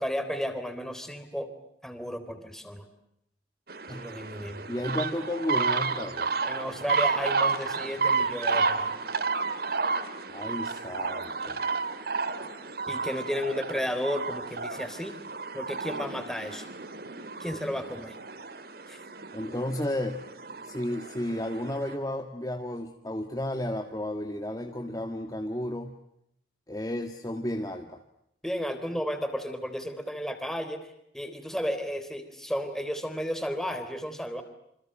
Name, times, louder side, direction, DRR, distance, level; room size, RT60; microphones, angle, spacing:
voice 1, 0.0-1.5 1.8-2.9 4.0-4.7 6.4-9.0 12.9-15.2 15.5-16.7 17.4-18.2 18.9-19.0 28.4-34.4, equal, 5° left, 8 dB, 3.6 m, -33 dB
sound 1, 3.7-22.0, right 4 dB, 60° right, 2.2 m, -31 dB
voice 2, 4.7-6.3 10.3-11.7 17.5-17.6 19.3-20.2 20.6-26.0 26.7-28.0, left 1 dB, 20° left, 4 dB, 1.8 m, -33 dB
28.5 x 27.0 x 7.6 m, 0.76 s
head